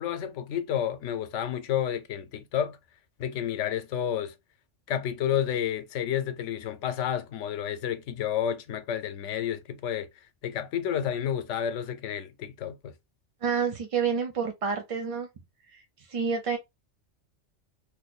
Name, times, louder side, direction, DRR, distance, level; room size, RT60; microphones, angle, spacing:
voice 1, 0.0-2.8 3.2-4.3 4.9-10.1 10.4-12.9, left 9 dB, 85° left, 0.9 m, -30 dB
voice 2, 13.4-15.3 15.7-15.8 16.1-16.6, right 6 dB, 55° right, 0.4 m, -28 dB
2.8 x 2.1 x 4.0 m
omnidirectional pair, 1.2 m